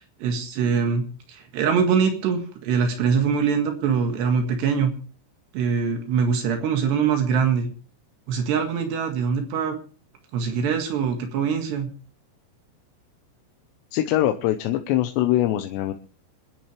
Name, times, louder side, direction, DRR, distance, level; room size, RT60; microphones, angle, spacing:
voice 1, 0.2-1.0 1.3-4.9 5.5-7.7 8.3-9.8 10.3-11.9, right 6 dB, 75° right, 4 dB, 3.9 m, -23 dB
voice 2, 13.9-15.9, left 13 dB, 90° left, 6 dB, 3.0 m, -22 dB
27.0 x 10.5 x 3.3 m, 0.37 s
omnidirectional pair, 4.9 m